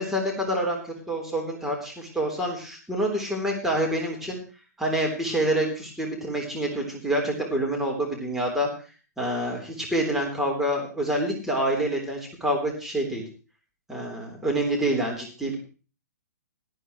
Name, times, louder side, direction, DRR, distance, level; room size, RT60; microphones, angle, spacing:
voice 1, 0.0-4.4 4.8-8.7 9.2-13.2 13.9-15.6, right 1 dB, 5° right, -1 dB, 3.7 m, -27 dB
18.0 x 13.5 x 3.2 m, 0.36 s
figure-of-eight pair, 125°, 9 cm